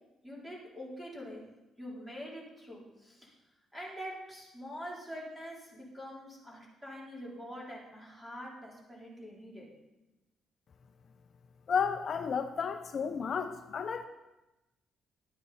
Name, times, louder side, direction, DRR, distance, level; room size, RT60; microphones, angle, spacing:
voice 1, 0.2-1.4 1.8-3.3 3.7-9.7, equal, 10° right, -4 dB, 3.7 m, -45 dB
voice 2, 11.7-14.1, left 6 dB, 50° left, 8 dB, 0.6 m, -32 dB
11.5 x 9.6 x 4.2 m, 1.0 s
cardioid pair, 90°, 0 cm